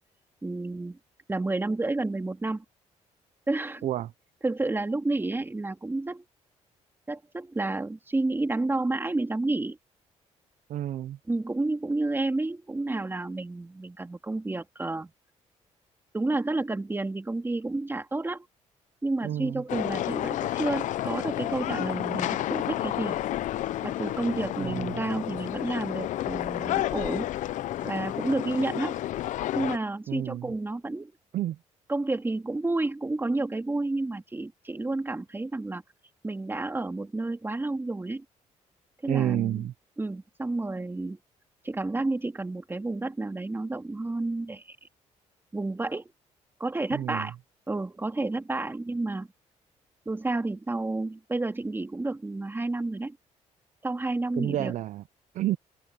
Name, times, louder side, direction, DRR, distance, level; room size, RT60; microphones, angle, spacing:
voice 1, 0.4-1.0 1.3-2.6 3.5-3.9 4.4-6.2 7.1-9.8 11.3-15.1 16.1-18.4 19.0-23.2 23.8-27.3 27.8-29.0 29.5-31.1 31.9-35.8 36.2-38.2 39.0-39.7 40.0-41.2 41.6-44.8 45.5-46.1 46.6-47.3 47.7-49.3 50.1-53.2 53.8-54.7, right 2 dB, 15° right, 2.8 m, -30 dB
voice 2, 10.7-11.2 19.2-19.6 24.6-25.0 30.1-30.5 31.3-31.6 39.1-39.7 46.9-47.3 54.4-55.0 55.3-55.6, right 12 dB, 70° right, 0.5 m, -30 dB
sound 1, 19.7-29.8, left 13 dB, 75° left, 0.6 m, -31 dB
cardioid pair, 90°, 13 cm